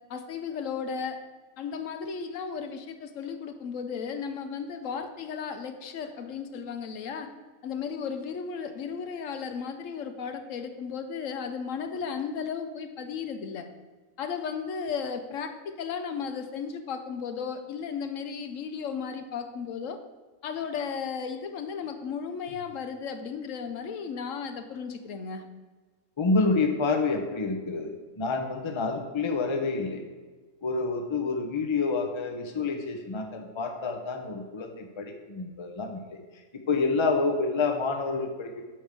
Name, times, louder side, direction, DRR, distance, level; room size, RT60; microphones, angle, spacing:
voice 1, 0.1-1.2 1.6-7.3 7.6-13.7 14.2-20.0 20.4-25.5, left 6 dB, 75° left, 8 dB, 1.0 m, -35 dB
voice 2, 26.2-30.0 30.6-36.0 36.7-38.6, left 3 dB, 25° left, 4 dB, 0.7 m, -28 dB
8.6 x 3.5 x 6.6 m, 1.3 s
omnidirectional pair, 1.4 m